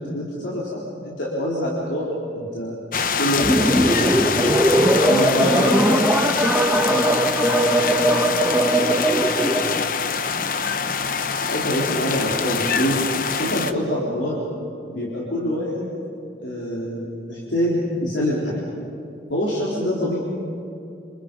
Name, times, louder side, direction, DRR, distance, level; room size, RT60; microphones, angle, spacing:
voice 1, 0.0-2.1 2.3-2.7 3.2-4.6 5.1-5.8 6.9-7.1 11.4-13.0 13.3-14.4 14.9-15.9 16.4-18.6 19.3-20.2, equal, 85° left, -5 dB, 3.9 m, -25 dB
sound 1, 2.9-13.7, left 6 dB, 50° left, 0.9 m, -24 dB
sound 2, 3.4-9.8, right 1 dB, 10° right, 1.3 m, -20 dB
voice 2, 4.8-6.2 6.9-10.0, equal, 65° left, -1 dB, 6.8 m, -31 dB
28.0 x 27.0 x 5.4 m, 2.7 s
head